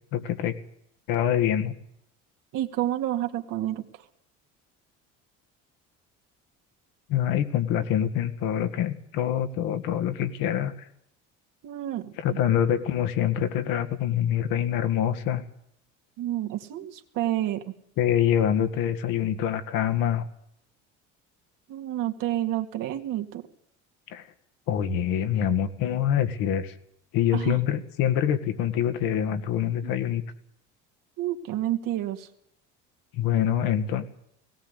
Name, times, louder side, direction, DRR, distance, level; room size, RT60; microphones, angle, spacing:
voice 1, 0.1-0.5 1.1-1.7 7.1-10.9 12.2-15.4 18.0-20.3 24.1-24.2 24.7-26.7 27.1-30.2 33.1-34.2, left 10 dB, 75° left, 8 dB, 2.0 m, -25 dB
voice 2, 2.5-3.8 11.6-12.1 16.2-17.6 21.7-23.4 27.3-27.6 29.8-29.9 31.2-32.3, right 13 dB, 70° right, 4 dB, 2.2 m, -29 dB
18.0 x 18.0 x 8.2 m, 0.75 s
supercardioid pair, 75°, 35 cm